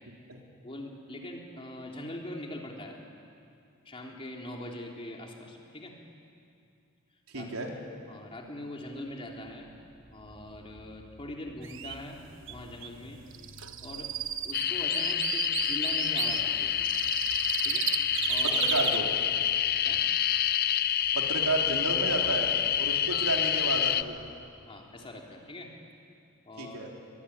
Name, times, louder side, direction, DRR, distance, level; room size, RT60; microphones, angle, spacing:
voice 1, 0.6-3.0 3.8-6.0 7.3-7.6 8.0-9.7 10.1-13.2 13.8-14.1 14.4-16.8 17.6-17.9 18.3-18.7 19.8-20.0 22.2-22.3 23.1-23.2 24.7-25.7 26.5-26.9, left 1 dB, 25° left, 0 dB, 3.2 m, -42 dB
voice 2, 7.3-7.7 18.4-19.1 21.1-24.2 26.6-26.9, right 2 dB, 80° right, 0 dB, 3.9 m, -32 dB
sound 1, 9.1-24.3, equal, 90° left, 7.5 m, -55 dB
sound 2, 11.6-11.9 12.5-12.6 12.8-12.9 13.3-16.4 16.8-19.0, right 9 dB, 60° right, 1.3 m, -33 dB
sound 3, 14.5-24.0, left 10 dB, 45° left, 0.6 m, -28 dB
23.0 x 22.5 x 10.0 m, 2.5 s
head